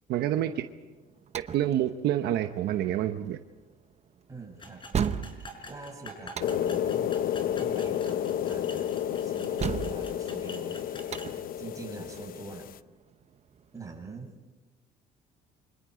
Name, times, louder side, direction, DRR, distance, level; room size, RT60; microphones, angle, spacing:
voice 1, 0.1-0.6 1.3-3.4, right 12 dB, 75° right, 8 dB, 1.0 m, -28 dB
sound 1, 0.8-14.0, right 7 dB, 40° right, 1.0 m, -38 dB
voice 2, 4.3-4.8 5.6-7.1 7.4-10.9 11.1-12.7 13.7-14.3, right 4 dB, 20° right, 0 dB, 7.5 m, -44 dB
sound 2, 4.6-11.3, left 2 dB, 30° left, 5.1 m, -46 dB
sound 3, 6.4-12.8, left 10 dB, 60° left, 0.7 m, -31 dB
28.5 x 25.5 x 5.1 m, 1.2 s
cardioid pair, 110°, 17 cm